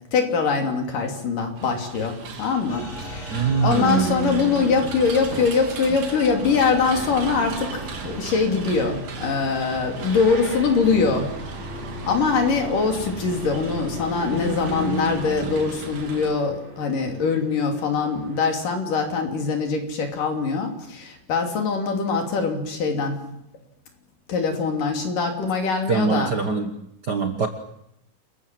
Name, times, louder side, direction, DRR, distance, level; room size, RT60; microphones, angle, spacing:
voice 1, 0.1-11.4 12.1-23.3 24.3-26.3, left 5 dB, 75° left, 4 dB, 4.8 m, -23 dB
sound 1, 1.6-16.3, right 4 dB, 65° right, 4.2 m, -37 dB
sound 2, 2.7-15.3, right 1 dB, 25° left, 4.3 m, -42 dB
voice 2, 3.3-4.1 25.9-26.7 27.1-27.5, right 5 dB, 50° right, 6 dB, 1.3 m, -23 dB
sound 3, 3.7-18.4, right 3 dB, 20° right, 3.0 m, -36 dB
29.0 x 22.0 x 7.7 m, 0.80 s
omnidirectional pair, 3.8 m